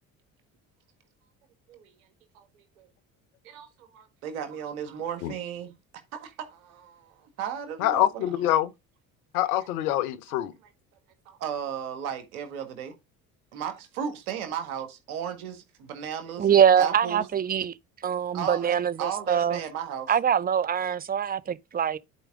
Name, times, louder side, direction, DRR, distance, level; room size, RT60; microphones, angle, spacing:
voice 1, 2.3-2.9 3.4-5.7 6.1-8.3 9.6-9.7 11.2-12.9 13.5-16.5 16.8-17.3 18.3-20.2, right 8 dB, 80° right, 1.7 m, -35 dB
voice 2, 7.8-8.7 9.3-10.5, left 13 dB, 80° left, 0.8 m, -25 dB
voice 3, 16.4-17.7 18.0-19.6 20.1-22.0, right 8 dB, 20° right, 0.6 m, -23 dB
11.0 x 4.7 x 3.6 m
hypercardioid pair, 60°, 43 cm